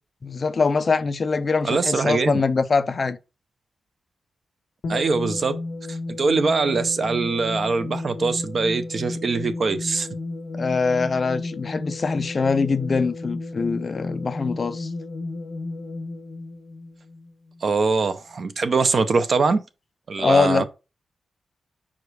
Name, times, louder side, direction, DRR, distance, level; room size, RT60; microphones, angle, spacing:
voice 1, 0.2-3.2 10.5-14.9 20.2-20.6, left 4 dB, 35° left, 0.4 m, -23 dB
voice 2, 1.6-2.4 4.9-5.6 5.9-10.1 17.6-19.6 20.1-20.6, right 4 dB, 45° right, 0.7 m, -22 dB
sound 1, 4.8-17.7, left 2 dB, 55° left, 1.2 m, -33 dB
5.2 x 5.0 x 4.7 m
wide cardioid pair, 180°, 0 cm